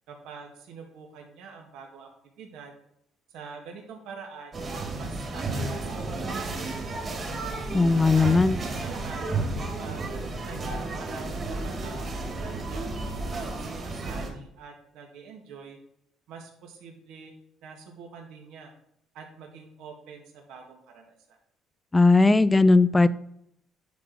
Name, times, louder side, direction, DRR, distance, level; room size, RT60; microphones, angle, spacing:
voice 1, 0.1-2.7 3.3-4.6 5.0-7.5 8.1-8.4 8.8-9.2 9.6-12.9 13.3-15.8 16.3-17.3 17.6-18.7 19.1-21.4, right 5 dB, 80° right, 2 dB, 2.0 m, -45 dB
sound 1, 4.5-14.3, right 2 dB, 35° right, 2.5 m, -32 dB
voice 2, 7.7-8.6 21.9-23.1, left 3 dB, 15° left, 15 dB, 0.5 m, -18 dB
10.0 x 4.8 x 6.2 m, 0.74 s
cardioid pair, 125°, 0 cm